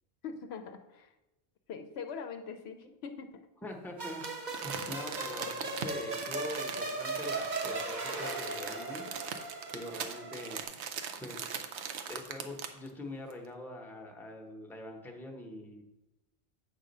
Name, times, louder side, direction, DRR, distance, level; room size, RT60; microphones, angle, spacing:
voice 1, 0.2-1.1 1.7-3.3, left 6 dB, 75° left, 6 dB, 0.8 m, -42 dB
voice 2, 3.6-4.2 4.6-9.3 9.7-10.6 11.2-11.6 12.1-15.8, left 1 dB, ahead, 1 dB, 0.8 m, -44 dB
sound 1, 4.0-10.6, right 2 dB, 45° right, 1.0 m, -38 dB
Crumpling crinkling, 4.2-12.9 13.3-13.4, right 7 dB, 85° right, 0.9 m, -41 dB
8.1 x 3.7 x 5.3 m, 0.98 s
omnidirectional pair, 1.1 m